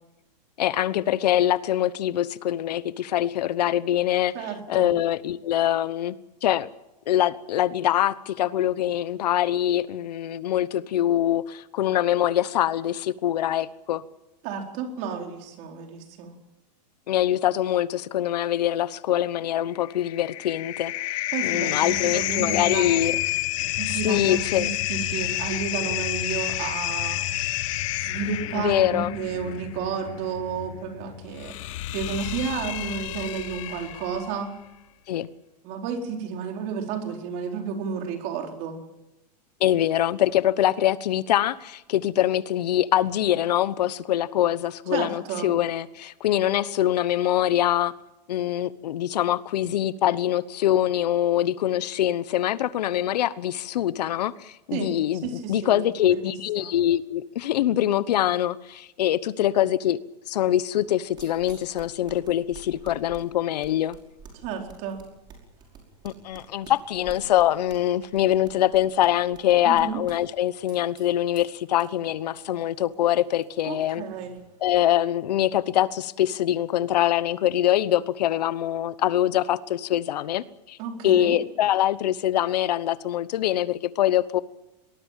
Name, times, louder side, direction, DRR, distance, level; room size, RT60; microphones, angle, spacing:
voice 1, 0.6-4.3 4.7-6.2 6.4-6.7 7.1-14.0 17.1-23.2 24.0-24.7 28.5-29.1 35.1-35.3 39.6-47.9 48.3-60.0 60.3-64.0 66.0-74.0 74.6-80.8 81.0-84.4, left 12 dB, 70° left, 1.1 m, -24 dB
voice 2, 4.3-4.9 14.4-16.4 21.3-23.0 23.6-27.2 28.0-31.6 31.9-34.5 35.6-38.8 44.9-45.5 54.7-54.9 55.2-56.7 64.3-65.0 69.6-70.0 73.7-74.3 80.8-81.4, right 6 dB, 35° right, 4.4 m, -32 dB
sound 1, 19.8-34.3, left 15 dB, 50° left, 1.3 m, -30 dB
sound 2, 60.8-74.6, right 5 dB, 20° right, 5.3 m, -50 dB
24.0 x 20.0 x 7.5 m
supercardioid pair, 165°, 21 cm